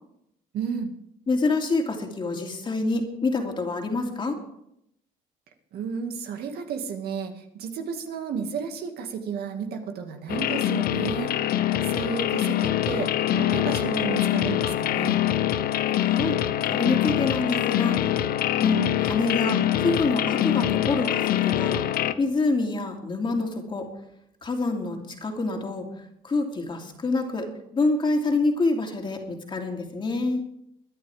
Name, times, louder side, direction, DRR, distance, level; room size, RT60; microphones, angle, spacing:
voice 1, 0.5-0.9 5.7-11.3 11.8-15.2, right 6 dB, 70° right, 4 dB, 2.1 m, -32 dB
voice 2, 1.3-4.4 16.0-16.4 16.7-18.1 18.5-21.8 22.2-23.9 24.4-25.9 26.2-30.4, left 3 dB, 30° left, 2 dB, 2.8 m, -26 dB
sound 1, 10.3-22.1, left 12 dB, 65° left, 0.8 m, -24 dB
23.5 x 10.0 x 3.5 m, 0.76 s
cardioid pair, 110°, 17 cm